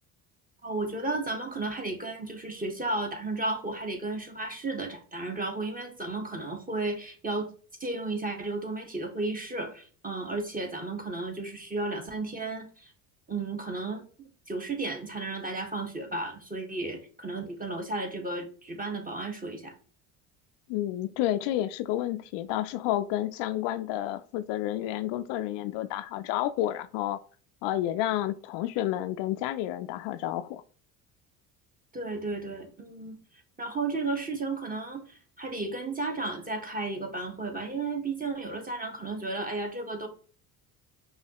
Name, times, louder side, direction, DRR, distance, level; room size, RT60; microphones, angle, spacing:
voice 1, 0.6-7.5 7.8-12.9 13.3-19.7 31.9-33.2 33.6-40.1, right 2 dB, 20° right, 1.2 m, -33 dB
voice 2, 20.7-27.2 27.6-30.6, left 13 dB, 65° left, 0.5 m, -30 dB
5.5 x 2.8 x 2.9 m
hypercardioid pair, 70°, 47 cm